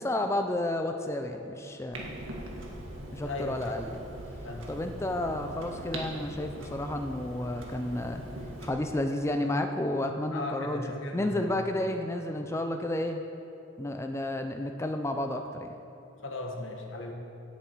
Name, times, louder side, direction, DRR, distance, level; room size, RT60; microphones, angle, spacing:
voice 1, 0.0-2.2 3.1-4.0 4.7-8.2 8.6-10.8 11.1-13.3 13.8-15.7, left 1 dB, 15° left, 5 dB, 0.4 m, -31 dB
Clock, 1.9-8.7, right 1 dB, 90° right, 1.7 m, -41 dB
voice 2, 3.2-3.8 4.4-4.7 10.3-11.6 16.2-17.1, left 2 dB, 75° left, 2 dB, 1.3 m, -37 dB
17.0 x 7.3 x 4.5 m, 2.9 s
head